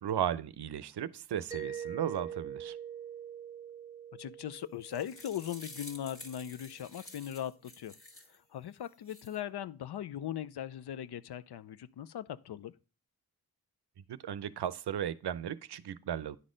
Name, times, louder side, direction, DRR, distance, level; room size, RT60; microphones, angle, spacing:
voice 1, 0.0-2.8 14.1-16.4, right 10 dB, 85° right, 0.6 m, -35 dB
Mallet percussion, 1.5-6.1, right 8 dB, 10° right, 0.6 m, -44 dB
voice 2, 4.1-7.9 8.3-12.7, left 10 dB, 80° left, 0.5 m, -39 dB
sound 1, 4.6-8.4 8.8-9.4, left 2 dB, 35° left, 1.4 m, -51 dB
9.9 x 4.2 x 5.0 m
wide cardioid pair, 105°, 39 cm